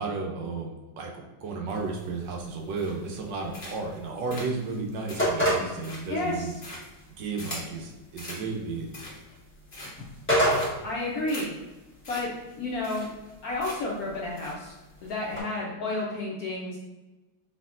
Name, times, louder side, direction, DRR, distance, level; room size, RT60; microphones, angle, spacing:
voice 1, 0.0-6.5 7.2-8.9, right 3 dB, 70° right, 0 dB, 1.2 m, -33 dB
sound 1, 1.7-15.4, equal, 10° left, 0.9 m, -34 dB
sound 2, 2.8-3.2 3.5-4.0 4.3-7.8 8.2-8.4 8.8-9.3 9.7-10.2 10.5-10.9 11.3-11.4 11.7-11.8 12.0-12.2 12.5-12.6 12.8-13.3 13.6-14.0 14.4-14.5, left 1 dB, 45° left, 0.7 m, -42 dB
voice 2, 6.1-6.5 10.8-11.5 12.1-12.3 12.6-13.1 13.4-14.7 15.0-16.8, left 2 dB, 70° left, -3 dB, 0.9 m, -31 dB
4.4 x 3.5 x 2.4 m, 1.1 s
omnidirectional pair, 2.1 m